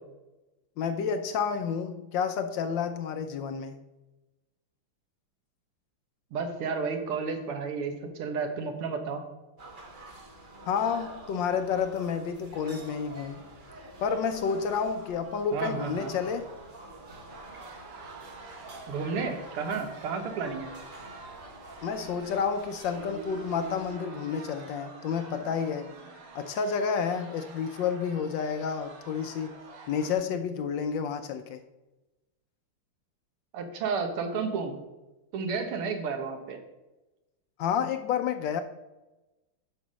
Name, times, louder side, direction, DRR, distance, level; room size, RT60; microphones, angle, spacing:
voice 1, 0.8-3.8 10.6-13.4 14.0-16.5 21.8-25.9 26.3-29.6 29.9-31.6 37.6-38.6, left 6 dB, 70° left, 8 dB, 1.1 m, -30 dB
voice 2, 6.3-9.2 15.5-16.1 18.9-20.7 33.5-34.8 35.3-36.6, right 5 dB, 90° right, 6 dB, 2.0 m, -32 dB
sound 1, 9.6-23.9, right 1 dB, 35° right, 0.8 m, -47 dB
sound 2, 17.3-30.1, right 3 dB, 65° right, 2.0 m, -47 dB
7.0 x 5.4 x 6.2 m, 1.0 s
omnidirectional pair, 2.3 m